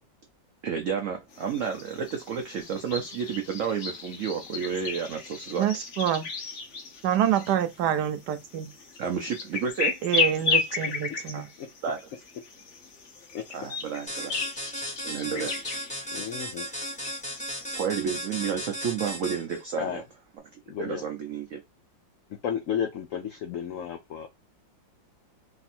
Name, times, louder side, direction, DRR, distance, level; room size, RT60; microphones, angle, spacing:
voice 1, 0.6-5.7 9.0-9.9 11.3-11.5 11.8-12.0 13.5-14.3 15.0-15.5 17.8-20.0 20.8-21.6, right 7 dB, 90° right, 0.6 m, -31 dB
sound 1, 1.3-17.8, left 5 dB, 50° left, 1.0 m, -34 dB
voice 2, 5.6-6.3 7.0-8.7 10.0-11.5, right 10 dB, 70° right, 1.1 m, -26 dB
sound 2, 14.1-19.6, equal, 5° left, 0.8 m, -35 dB
voice 3, 16.1-16.7 19.8-20.0 20.7-21.0 22.4-24.3, left 8 dB, 85° left, 0.7 m, -33 dB
3.4 x 2.6 x 4.2 m
omnidirectional pair, 2.0 m